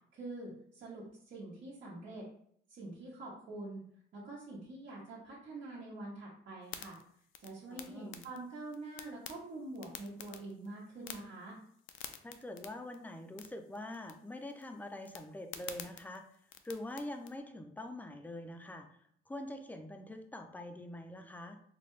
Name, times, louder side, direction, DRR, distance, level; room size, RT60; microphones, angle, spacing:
voice 1, 0.1-2.3 2.7-3.8 4.1-7.0 7.4-11.6, right 2 dB, 75° right, -8 dB, 1.1 m, -45 dB
sound 1, 6.6-17.4, left 9 dB, 80° left, 0.4 m, -51 dB
voice 2, 7.7-8.3 12.2-16.2 16.6-18.9 19.3-21.6, left 1 dB, 10° left, 6 dB, 0.4 m, -44 dB
4.2 x 2.2 x 3.1 m, 0.66 s
cardioid pair, 90°, 20 cm